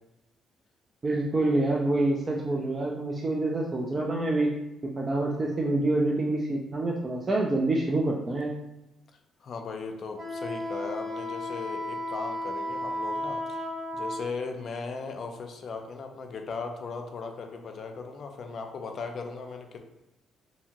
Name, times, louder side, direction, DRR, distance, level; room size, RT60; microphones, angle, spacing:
voice 1, 1.0-4.5 4.8-8.5, right 2 dB, 30° right, -2 dB, 0.4 m, -27 dB
voice 2, 9.4-19.8, left 4 dB, 55° left, 4 dB, 0.4 m, -38 dB
Wind instrument woodwind instrument, 10.2-14.3, left 1 dB, 70° right, 0.9 m, -33 dB
2.7 x 2.4 x 2.8 m, 0.92 s
cardioid pair, 90°, 0 cm